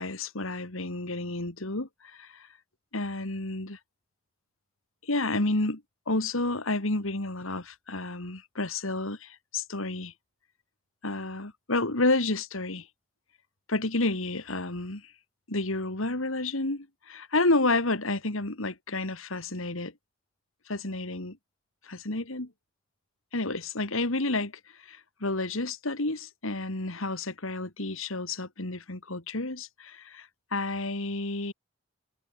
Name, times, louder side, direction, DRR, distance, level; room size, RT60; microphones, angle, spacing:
voice 1, 0.0-2.5 2.9-3.8 5.0-10.1 11.0-12.9 13.7-15.1 15.5-19.9 20.7-21.4 21.8-22.5 23.3-24.5 24.8-31.5, left 2 dB, 80° left, 2.6 m, -30 dB
head